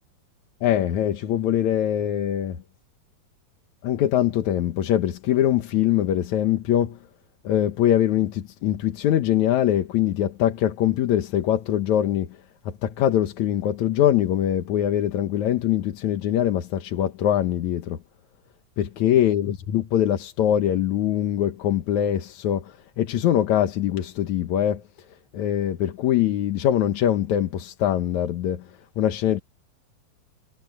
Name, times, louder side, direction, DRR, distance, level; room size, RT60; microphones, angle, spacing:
voice 1, 0.6-2.6 3.8-7.0 7.4-12.4 12.7-18.0 18.8-24.8 25.3-29.4, left 11 dB, 65° left, 2.2 m, -23 dB
omnidirectional pair, 4.2 m